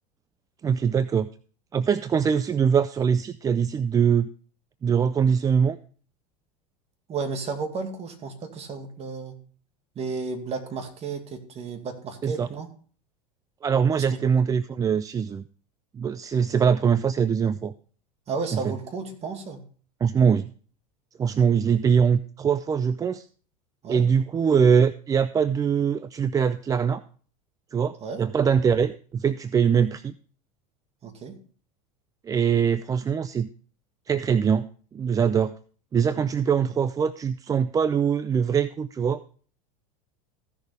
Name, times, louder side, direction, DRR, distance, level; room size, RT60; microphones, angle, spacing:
voice 1, 0.6-1.3 1.7-4.3 4.8-5.8 12.2-12.5 13.6-15.4 15.9-17.7 20.0-20.5 21.2-23.3 23.9-27.0 27.7-30.1 32.2-33.5 34.1-35.5 35.9-39.2, right 7 dB, 20° right, 15 dB, 0.4 m, -22 dB
voice 2, 7.1-9.4 10.0-12.7 14.0-14.2 18.3-19.6 23.8-24.1 28.0-28.2 31.0-31.4, right 4 dB, 35° right, 5 dB, 2.1 m, -33 dB
15.5 x 6.4 x 3.4 m, 0.42 s
supercardioid pair, 105°, 19 cm